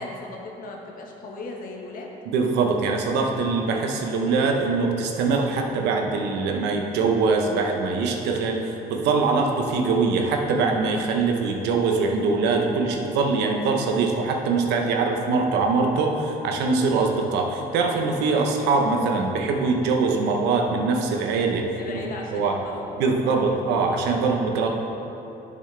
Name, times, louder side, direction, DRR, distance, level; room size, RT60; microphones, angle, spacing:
voice 1, 0.0-2.1 21.8-23.5, left 2 dB, 55° left, 0 dB, 1.4 m, -37 dB
voice 2, 2.3-22.6 23.0-24.7, right 4 dB, 90° right, 2 dB, 1.0 m, -23 dB
10.5 x 6.3 x 3.4 m, 3.0 s
cardioid pair, 110°, 17 cm